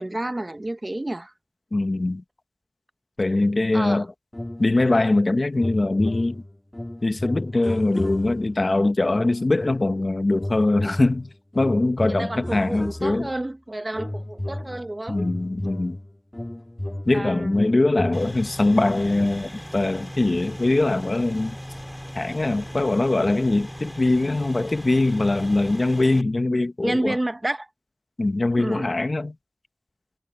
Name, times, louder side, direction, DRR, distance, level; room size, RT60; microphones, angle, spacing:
voice 1, 0.0-1.3 3.7-4.1 12.0-15.2 17.1-17.6 26.5-27.7 28.6-28.9, right 1 dB, 45° right, 0.8 m, -30 dB
voice 2, 1.7-2.2 3.2-4.1 4.6-6.4 7.0-11.3 11.5-13.3 15.1-16.0 17.1-21.6 22.2-27.2 28.2-29.3, left 2 dB, 75° left, 0.9 m, -22 dB
sound 1, 4.3-5.3 5.5-8.6 9.1-10.0 10.3-13.4 13.9-19.3, left 1 dB, 30° left, 2.0 m, -33 dB
sound 2, 18.1-26.2, equal, 5° left, 1.8 m, -38 dB
wide cardioid pair, 50°, 0 cm